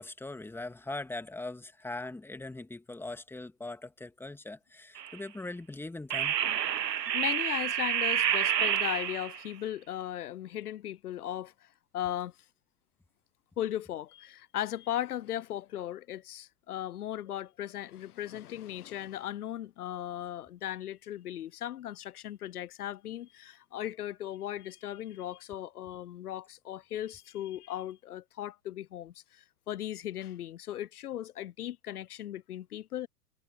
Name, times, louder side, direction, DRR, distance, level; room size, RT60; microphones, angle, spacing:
voice 1, 0.0-6.3, left 2 dB, 5° left, 2.4 m, -41 dB
sound 1, 5.0-5.2 6.1-9.5, right 9 dB, 90° right, 0.6 m, -29 dB
voice 2, 7.1-12.3 13.6-33.1, left 12 dB, 65° left, 0.9 m, -37 dB
figure-of-eight pair, 100°, 48 cm